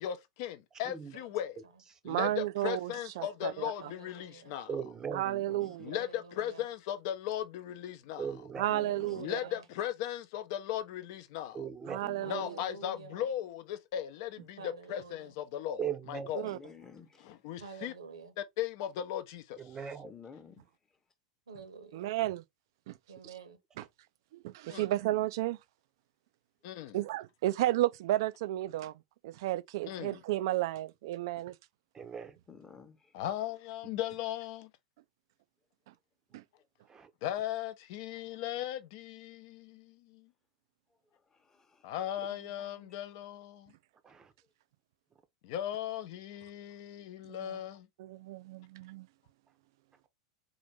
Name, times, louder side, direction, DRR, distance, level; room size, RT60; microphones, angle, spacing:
voice 1, 0.0-1.6 2.1-4.7 5.8-8.3 9.1-11.6 12.3-16.5 17.3-17.9 18.4-19.6 24.6-24.9 26.6-27.0 29.8-30.2 33.1-34.7 37.2-40.3 41.8-43.7 45.4-47.9, left 11 dB, 55° left, 0.6 m, -37 dB
voice 2, 2.1-3.7 5.1-5.9 8.6-9.4 11.9-12.5 16.3-16.6 21.9-22.4 22.9-23.0 23.8-23.9 24.3-25.6 26.9-28.9 29.2-31.6 36.3-36.4 47.3-47.6 48.0-49.1, right 15 dB, 60° right, 0.3 m, -33 dB
voice 3, 3.8-4.5 5.9-6.7 8.7-9.6 12.2-13.3 14.6-15.4 17.6-18.3 21.5-22.1 23.1-23.6 42.3-42.9, right 5 dB, 75° right, 1.0 m, -49 dB
voice 4, 4.7-5.2 8.2-8.7 11.5-12.0 15.8-16.3 19.6-20.1 31.9-32.4 36.9-37.1 44.0-44.3, right 7 dB, 20° right, 0.6 m, -38 dB
voice 5, 5.2-5.8 8.7-9.2 12.0-12.4 16.4-17.3 20.0-21.0 32.5-33.2 36.6-36.7 40.9-41.9, left 6 dB, 20° left, 0.9 m, -53 dB
3.9 x 2.5 x 3.3 m
figure-of-eight pair, 90°, 3 cm